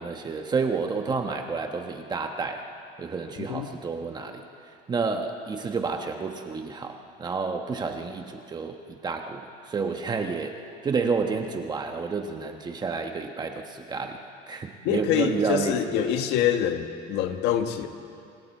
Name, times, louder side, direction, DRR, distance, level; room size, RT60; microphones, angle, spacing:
voice 1, 0.0-2.7 3.0-4.4 4.9-10.6 10.8-14.2 14.5-16.1, right 4 dB, 25° right, 4 dB, 1.2 m, -30 dB
voice 2, 3.4-3.7 14.8-17.9, left 10 dB, 75° left, 6 dB, 1.7 m, -25 dB
29.5 x 26.0 x 4.5 m, 2.6 s
cardioid pair, 145°, 18 cm